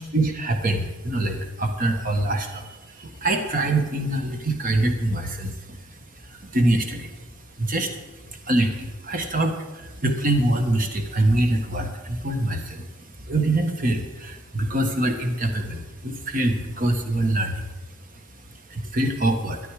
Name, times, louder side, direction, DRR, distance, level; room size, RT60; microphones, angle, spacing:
voice 1, 0.1-5.8 6.2-7.2 7.6-12.9 13.2-17.6 18.7-19.6, right 1 dB, 40° right, 5 dB, 1.2 m, -24 dB
13.0 x 9.7 x 4.9 m, 1.1 s
head